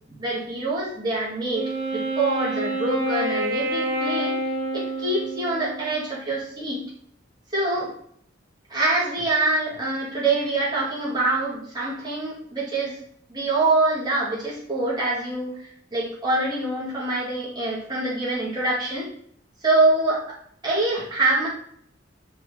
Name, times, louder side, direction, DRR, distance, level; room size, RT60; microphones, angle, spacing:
voice 1, 0.1-4.4 4.7-6.8 7.5-7.9 8.7-13.0 13.3-19.1 19.6-20.4 20.6-21.5, right 2 dB, 20° right, -6 dB, 2.4 m, -25 dB
Wind instrument woodwind instrument, 1.5-6.1, right 1 dB, 75° right, 2.5 m, -28 dB
5.9 x 4.8 x 4.0 m, 0.64 s
head